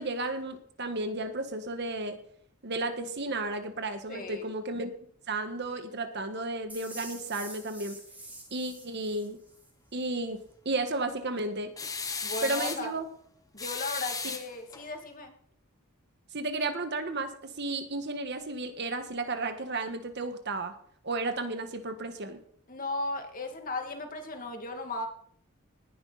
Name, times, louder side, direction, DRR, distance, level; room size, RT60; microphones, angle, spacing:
voice 1, 0.0-2.2 2.6-4.9 5.3-8.0 8.5-9.4 9.9-11.7 12.4-13.1 14.2-14.3 16.3-20.7 21.0-22.4, right 2 dB, 50° right, 8 dB, 1.6 m, -33 dB
voice 2, 4.1-4.5 12.2-12.9 13.5-15.3 22.7-25.1, left 2 dB, 40° left, 4 dB, 2.4 m, -36 dB
sound 1, 6.7-9.7, right 1 dB, 5° right, 2.9 m, -46 dB
sound 2, 11.8-12.9 13.6-14.8, left 5 dB, 15° left, 1.3 m, -35 dB
19.0 x 10.5 x 4.2 m, 0.62 s
head